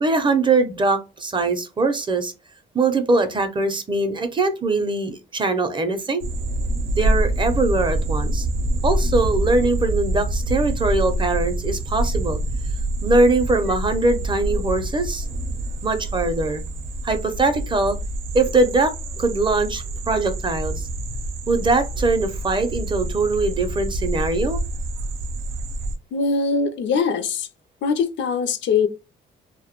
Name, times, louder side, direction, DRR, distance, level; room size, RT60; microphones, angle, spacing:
voice 1, 0.0-2.3 2.7-6.2 6.9-8.5 8.8-12.4 13.0-15.3 15.8-16.6 17.0-18.0 18.3-20.9 21.5-24.6, right 3 dB, 25° right, 0.4 m, -21 dB
sound 1, 6.2-26.0, right 1 dB, 85° right, 0.5 m, -26 dB
voice 2, 26.1-27.5 27.8-28.9, left 5 dB, 65° left, 0.4 m, -22 dB
2.2 x 2.1 x 2.8 m
cardioid pair, 90°, 20 cm